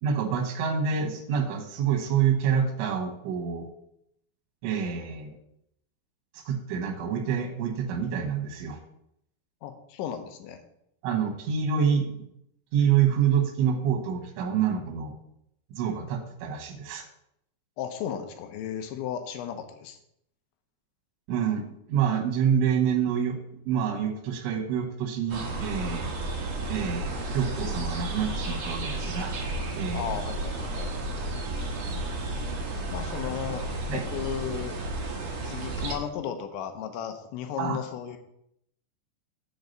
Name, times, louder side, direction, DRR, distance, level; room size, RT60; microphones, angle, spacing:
voice 1, 0.0-3.7 4.6-5.4 6.4-8.8 11.0-12.1 12.7-15.1 15.7-17.1 21.3-23.4 23.7-26.1 26.7-29.3 29.7-30.2 33.9-34.0 37.6-37.8, right 7 dB, 90° right, 4 dB, 3.7 m, -27 dB
voice 2, 9.6-10.6 17.8-20.0 29.9-30.9 31.6-31.7 32.9-34.8 35.4-38.2, left 9 dB, 80° left, 7 dB, 3.0 m, -35 dB
sound 1, 25.3-36.0, right 2 dB, 65° right, 1.6 m, -32 dB
8.1 x 4.6 x 6.5 m, 0.76 s
omnidirectional pair, 5.3 m